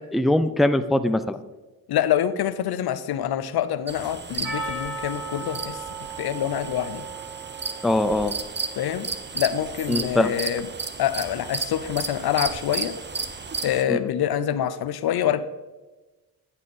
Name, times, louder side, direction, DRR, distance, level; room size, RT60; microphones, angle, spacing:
voice 1, 0.1-1.4 7.8-8.3 9.9-10.3 13.9-14.0, left 1 dB, ahead, 11 dB, 0.4 m, -21 dB
voice 2, 1.9-5.8 6.2-7.0 8.8-9.1 9.3-10.7 11.0-12.9 13.6-15.4, left 10 dB, 65° left, 13 dB, 0.6 m, -26 dB
sound 1, 3.9-13.8, right 4 dB, 25° right, 0.8 m, -34 dB
Percussion, 4.4-9.0, right 3 dB, 75° right, 3.0 m, -36 dB
9.5 x 5.5 x 4.1 m, 1.2 s
supercardioid pair, 45°, 40 cm